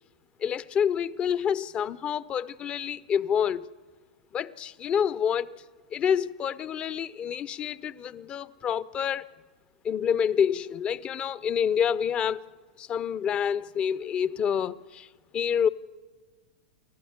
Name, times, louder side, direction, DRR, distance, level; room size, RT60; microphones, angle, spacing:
voice 1, 0.4-3.7 4.3-5.6 5.9-9.3 9.8-12.4 12.8-15.1 15.3-15.7, left 8 dB, 30° left, 0.6 m, -28 dB
29.0 x 12.5 x 8.0 m
hypercardioid pair, 110°, 4 cm